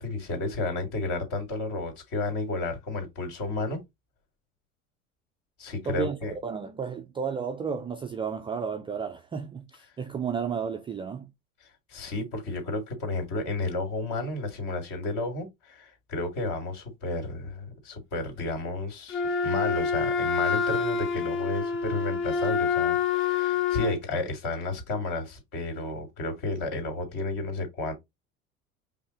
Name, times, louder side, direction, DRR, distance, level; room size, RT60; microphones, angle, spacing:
voice 1, 0.0-3.8 5.6-6.3 11.9-27.9, left 2 dB, 45° left, 2.6 m, -32 dB
voice 2, 5.9-11.3, right 6 dB, 15° right, 0.4 m, -33 dB
Wind instrument woodwind instrument, 19.1-24.0, left 6 dB, 30° left, 1.1 m, -27 dB
5.3 x 2.3 x 4.0 m
figure-of-eight pair, 70°, 42 cm